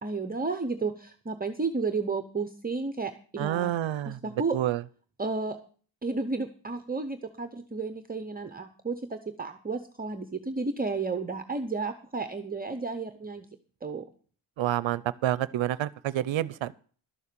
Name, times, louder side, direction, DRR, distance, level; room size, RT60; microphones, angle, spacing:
voice 1, 0.0-3.7 4.1-4.6 5.2-5.6 6.0-13.5 13.8-14.0, right 4 dB, 20° right, 8 dB, 0.7 m, -32 dB
voice 2, 3.4-4.2 4.5-4.8 14.6-16.7, right 12 dB, 70° right, 18 dB, 0.6 m, -28 dB
12.0 x 7.3 x 6.7 m, 0.42 s
wide cardioid pair, 160°, 48 cm